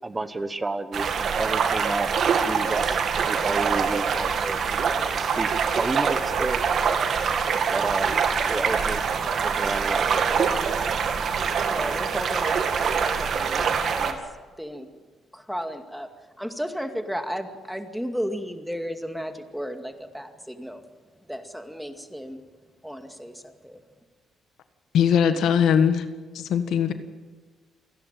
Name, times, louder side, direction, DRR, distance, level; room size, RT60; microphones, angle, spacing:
voice 1, 0.0-4.6 5.0-5.5 5.8-6.6 7.7-8.2 8.5-9.0 9.4-10.6, right 3 dB, 20° right, 12 dB, 1.1 m, -31 dB
sound 1, 0.9-14.1, right 6 dB, 60° right, 2.3 m, -24 dB
voice 2, 11.6-14.2 14.6-14.9 15.3-16.1 16.4-20.8 21.2-22.4 22.8-23.8, equal, ahead, 6 dB, 2.2 m, -34 dB
voice 3, 24.9-26.0 26.3-26.9, left 8 dB, 75° left, 9 dB, 1.5 m, -20 dB
28.5 x 11.0 x 9.2 m, 1.4 s
cardioid pair, 90°, 0 cm